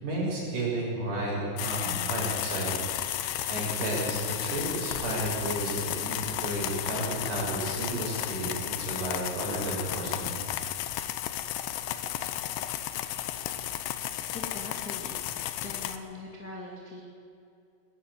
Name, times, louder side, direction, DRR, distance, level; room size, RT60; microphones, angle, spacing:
voice 1, 0.0-2.8 3.2-10.4, right 1 dB, 50° right, -5 dB, 8.7 m, -32 dB
sound 1, 1.6-16.0, left 12 dB, 75° left, 2.7 m, -33 dB
voice 2, 14.3-15.2 15.6-17.0, left 2 dB, 30° left, -2 dB, 1.9 m, -41 dB
21.0 x 13.5 x 9.6 m, 2.6 s
omnidirectional pair, 5.6 m